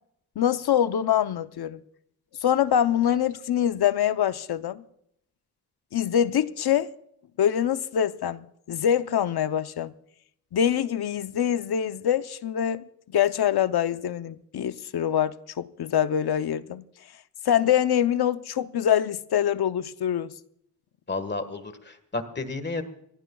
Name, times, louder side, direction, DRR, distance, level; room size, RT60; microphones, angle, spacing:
voice 1, 0.4-1.8 2.4-4.8 5.9-6.9 7.4-9.9 10.5-12.8 13.1-16.8 17.4-20.3, left 9 dB, 70° left, 0.7 m, -24 dB
voice 2, 21.1-22.8, left 3 dB, 25° left, 1.5 m, -32 dB
25.5 x 17.0 x 2.3 m
wide cardioid pair, 145°, 40 cm